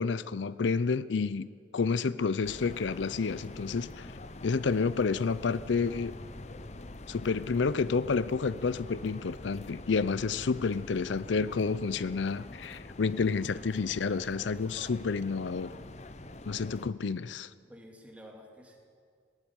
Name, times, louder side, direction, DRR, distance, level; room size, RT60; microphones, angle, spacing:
voice 1, 0.0-4.1 4.4-6.2 7.1-15.7 16.5-17.5, left 4 dB, 80° left, 17 dB, 0.5 m, -30 dB
sound 1, 2.4-16.9, left 2 dB, 35° left, 0.7 m, -45 dB
voice 2, 17.7-18.8, equal, 5° right, 1 dB, 2.6 m, -51 dB
19.0 x 14.5 x 9.7 m, 2.2 s
head